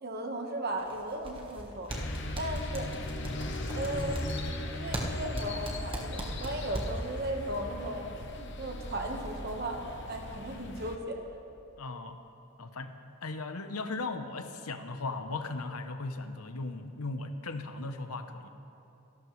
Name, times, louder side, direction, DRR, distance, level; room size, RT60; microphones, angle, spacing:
voice 1, 0.0-1.9 2.4-2.9 3.7-4.3 4.7-8.1 8.6-11.2, right 1 dB, 45° right, 3 dB, 1.3 m, -36 dB
sound 1, 0.8-1.6 1.9-7.1, right 1 dB, 25° right, 1.3 m, -37 dB
sound 2, 1.9-11.0, left 2 dB, 50° left, 1.0 m, -40 dB
voice 2, 11.8-12.2 12.6-12.9 13.2-18.5, left 3 dB, 85° left, 8 dB, 0.9 m, -37 dB
26.5 x 12.0 x 3.2 m, 2.8 s
head